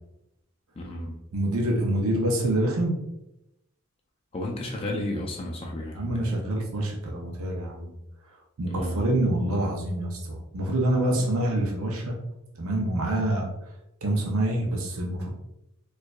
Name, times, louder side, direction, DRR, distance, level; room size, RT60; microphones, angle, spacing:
voice 1, 0.8-1.2 4.3-6.3 8.7-9.0, left 1 dB, 25° left, 0 dB, 0.4 m, -32 dB
voice 2, 1.3-3.0 5.9-7.9 8.6-12.2 12.6-13.5 14.0-15.3, right 1 dB, 80° right, 0 dB, 0.6 m, -26 dB
4.5 x 2.4 x 2.3 m, 0.88 s
head